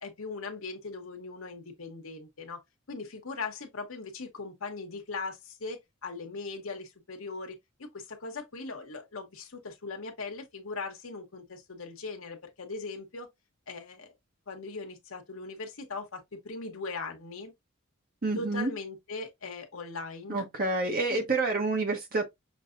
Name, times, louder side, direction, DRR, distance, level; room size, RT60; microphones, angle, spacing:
voice 1, 0.0-2.6 2.9-13.3 13.7-14.1 14.5-17.5 18.4-20.4 21.1-21.2, left 3 dB, 80° left, 1.0 m, -39 dB
voice 2, 18.2-18.7 20.3-22.2, right 3 dB, 45° right, 0.9 m, -28 dB
6.0 x 2.7 x 2.5 m
head